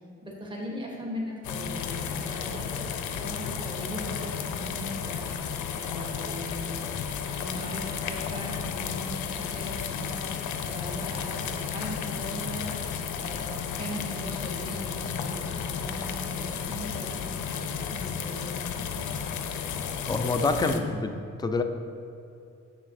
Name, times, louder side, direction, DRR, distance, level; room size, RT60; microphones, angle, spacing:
voice 1, 0.2-2.8 3.1-7.0 7.3-12.7 13.2-17.2 17.5-18.7, left 1 dB, 15° right, -2 dB, 1.1 m, -39 dB
sound 1, 1.4-20.8, left 7 dB, 75° left, 0.5 m, -33 dB
voice 2, 20.1-21.6, left 3 dB, 15° left, 6 dB, 0.4 m, -27 dB
7.4 x 5.7 x 2.6 m, 2.6 s
cardioid pair, 90°, 30 cm